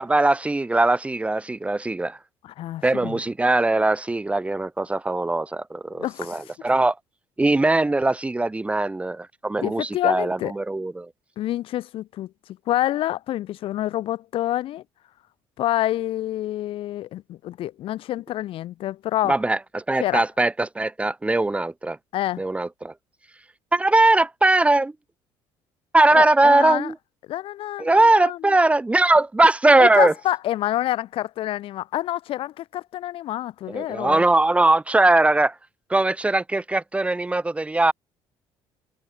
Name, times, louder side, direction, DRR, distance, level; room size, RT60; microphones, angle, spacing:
voice 1, 0.0-2.2 2.8-6.9 7.4-11.1 19.3-22.0 22.4-22.9 23.7-24.9 25.9-26.9 27.8-30.1 33.7-35.5 35.9-37.9, right 2 dB, 15° right, 2.1 m, -20 dB
voice 2, 2.4-3.2 5.9-6.4 9.6-10.5 11.4-12.3 12.7-14.8 15.6-19.4 20.0-20.2 22.1-22.4 26.1-26.9 27.3-28.5 29.8-34.2, left 14 dB, 70° left, 4.4 m, -27 dB
cardioid pair, 110°, 10 cm